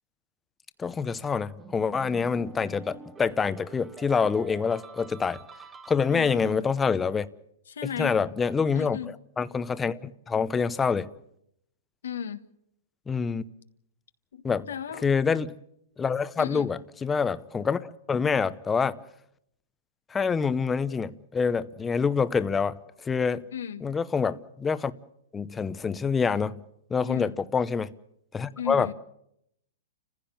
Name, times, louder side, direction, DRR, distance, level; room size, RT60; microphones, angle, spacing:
voice 1, 0.8-5.4 5.9-7.3 8.0-9.0 9.4-11.1 13.1-13.4 14.4-14.7 15.0-15.5 16.0-19.0 20.1-22.8 23.0-23.4 23.8-24.9 25.3-26.6 26.9-27.9 28.3-28.9, left 5 dB, 10° left, 0.8 m, -26 dB
sound 1, 1.6-6.5, right 4 dB, 15° right, 1.2 m, -47 dB
voice 2, 6.1-6.7 7.7-8.2 8.7-9.1 12.0-12.4 14.3-15.1 16.4-16.7 23.5-23.9 27.0-27.3 28.6-28.9, left 8 dB, 85° left, 1.5 m, -35 dB
29.5 x 15.5 x 7.3 m
hypercardioid pair, 150°, 0 cm